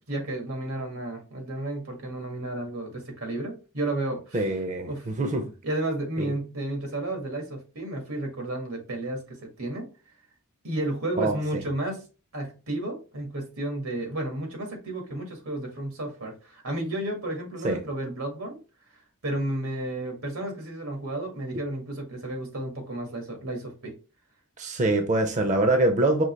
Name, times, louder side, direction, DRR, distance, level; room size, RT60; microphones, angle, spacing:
voice 1, 0.1-4.5 4.9-5.1 5.6-9.9 10.6-12.0 12.3-18.6 19.2-23.9, right 1 dB, 90° right, 1.7 m, -32 dB
voice 2, 4.3-5.5 6.2-6.3 11.2-11.6 17.6-17.8 24.6-26.2, right 2 dB, 35° right, 0.6 m, -24 dB
5.3 x 2.9 x 3.2 m
head